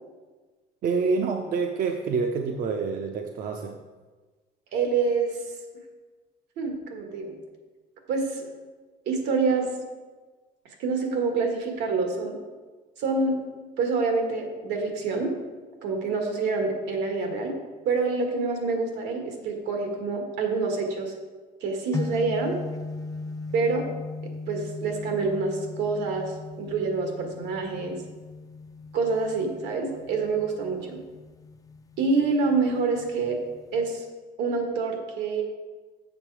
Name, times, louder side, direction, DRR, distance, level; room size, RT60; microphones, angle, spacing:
voice 1, 0.8-3.8, right 4 dB, 55° right, 4 dB, 0.7 m, -27 dB
voice 2, 4.7-5.4 6.6-7.4 8.1-8.5 9.0-9.6 10.8-12.3 13.0-13.4 13.8-15.3 15.8-17.6 17.8-21.1 21.6-22.6 23.5-23.9 24.5-28.0 28.9-31.0 32.0-33.4 33.7-34.0 34.4-35.4, right 4 dB, 85° right, 3 dB, 1.7 m, -26 dB
sound 1, 21.9-34.0, left 3 dB, 20° left, 0.5 m, -38 dB
7.2 x 6.6 x 4.7 m, 1.3 s
cardioid pair, 110°, 17 cm